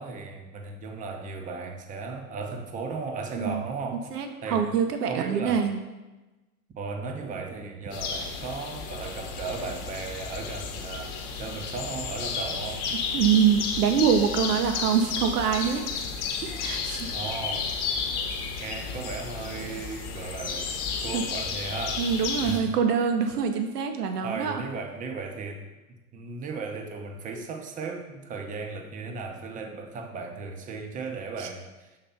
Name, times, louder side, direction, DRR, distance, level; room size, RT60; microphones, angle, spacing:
voice 1, 0.0-4.0 4.4-4.7 5.1-5.6 6.8-12.9 17.1-17.7 18.6-20.7 21.0-22.1 22.4-22.8 24.2-25.7 26.1-32.0, right 4 dB, 15° right, 4 dB, 0.6 m, -36 dB
voice 2, 4.1-5.8 13.1-16.0 16.4-17.1 21.1-21.2 22.0-24.6 31.4-31.5, right 7 dB, 80° right, 5 dB, 0.9 m, -25 dB
sound 1, 7.9-22.6, left 5 dB, 40° left, 1.0 m, -32 dB
7.0 x 3.3 x 5.4 m, 1.1 s
hypercardioid pair, 115°, 46 cm